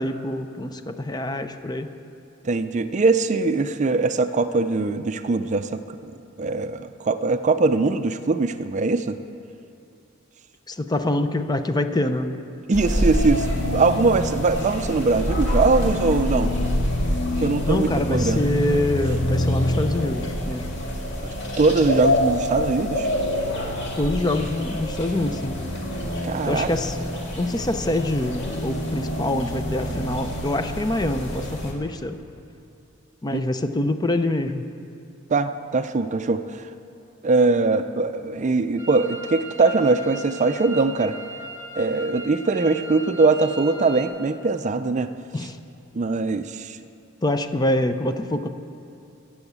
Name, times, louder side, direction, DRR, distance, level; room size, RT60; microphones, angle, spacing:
voice 1, 0.0-1.9 10.7-12.4 17.7-20.7 24.0-25.6 26.5-27.0 27.4-32.2 33.2-34.6 45.3-45.6 47.2-48.5, left 1 dB, 20° left, 9 dB, 0.5 m, -25 dB
voice 2, 2.4-6.1 6.4-9.2 12.7-16.5 17.4-18.4 21.6-23.1 26.0-26.7 33.3-33.4 35.3-36.4 37.2-41.2 41.8-45.1 45.9-46.8, right 3 dB, 35° right, 10 dB, 0.4 m, -21 dB
sound 1, 12.7-31.7, left 1 dB, 60° left, 2.1 m, -26 dB
sound 2, 38.8-44.0, right 1 dB, 15° right, 1.5 m, -38 dB
16.0 x 7.1 x 8.1 m, 2.7 s
head